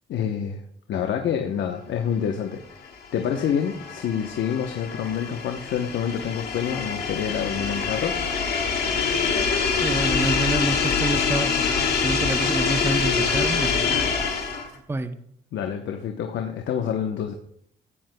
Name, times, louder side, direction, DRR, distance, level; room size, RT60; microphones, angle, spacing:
voice 1, 0.1-0.6 0.9-8.2 8.7-8.9 15.5-17.3, left 8 dB, 70° left, 4 dB, 0.9 m, -27 dB
sound 1, 2.9-14.8, left 5 dB, 55° left, 2.0 m, -25 dB
voice 2, 9.8-14.0 14.9-15.1, right 2 dB, 10° right, 10 dB, 0.6 m, -28 dB
15.5 x 9.4 x 2.2 m, 0.68 s
cardioid pair, 90°, 20 cm